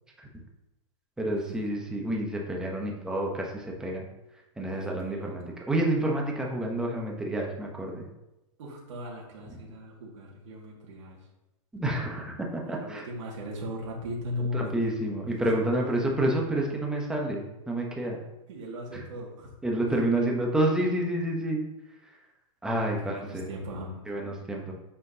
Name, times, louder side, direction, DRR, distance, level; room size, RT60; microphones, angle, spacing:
voice 1, 1.2-4.1 4.6-8.1 11.7-13.0 14.5-18.2 18.9-19.0 19.6-21.7 22.6-23.5 24.1-24.7, right 1 dB, 5° right, -1 dB, 0.8 m, -29 dB
voice 2, 4.7-5.6 8.6-11.2 12.6-15.1 15.6-15.9 18.5-19.5 22.7-24.0, left 1 dB, 65° right, -4 dB, 1.9 m, -38 dB
7.9 x 5.8 x 2.8 m, 0.93 s
supercardioid pair, 170°, 17 cm